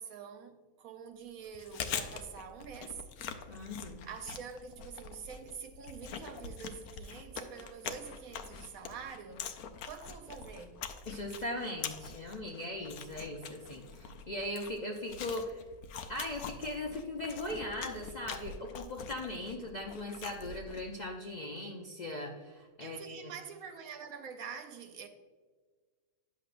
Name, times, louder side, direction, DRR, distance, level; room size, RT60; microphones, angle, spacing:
voice 1, 0.0-3.0 4.0-9.6 9.8-10.8 22.8-25.1, right 6 dB, 75° right, 1.2 m, -46 dB
Chewing mastication, 1.4-21.0, left 6 dB, 85° left, 1.1 m, -44 dB
voice 2, 3.5-4.1 11.1-15.6 16.1-23.3, left 1 dB, 50° left, 0.5 m, -39 dB
10.0 x 6.8 x 2.5 m
omnidirectional pair, 1.5 m